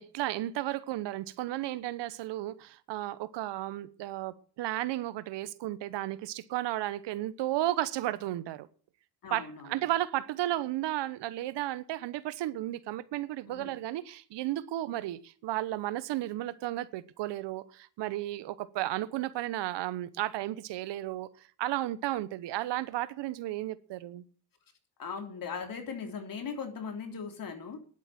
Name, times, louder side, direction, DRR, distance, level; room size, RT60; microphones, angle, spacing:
voice 1, 0.0-8.7 9.3-21.3 21.6-24.2, right 15 dB, 75° right, 1.1 m, -33 dB
voice 2, 9.2-9.7 13.5-13.7 25.0-27.8, left 5 dB, 50° left, 3.4 m, -39 dB
10.5 x 8.2 x 8.6 m
cardioid pair, 90°, 42 cm